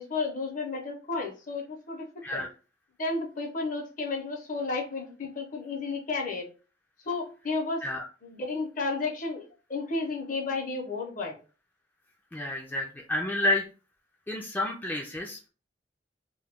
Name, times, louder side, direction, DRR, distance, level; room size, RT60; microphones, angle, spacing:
voice 1, 0.0-2.1 2.3-2.4 3.0-6.5 7.0-7.8 8.2-9.4 9.7-11.4, left 3 dB, 50° left, 1 dB, 0.7 m, -32 dB
voice 2, 12.3-13.6 14.3-15.5, left 1 dB, 10° left, -1 dB, 0.3 m, -30 dB
2.2 x 2.1 x 3.4 m, 0.35 s
head